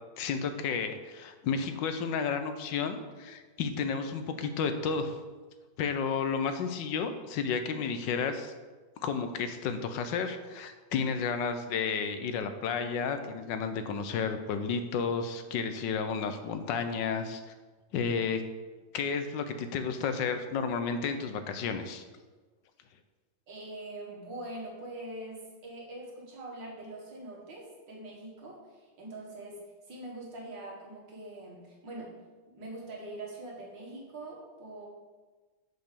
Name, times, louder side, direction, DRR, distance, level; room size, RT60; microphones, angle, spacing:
voice 1, 0.2-5.2 5.8-8.5 9.0-17.4 17.9-18.4 18.9-22.0, left 5 dB, 80° left, 8 dB, 1.3 m, -32 dB
voice 2, 23.5-29.6 29.9-32.1 32.5-34.9, right 2 dB, 75° right, -3 dB, 2.4 m, -43 dB
6.0 x 5.4 x 6.7 m, 1.3 s
omnidirectional pair, 2.0 m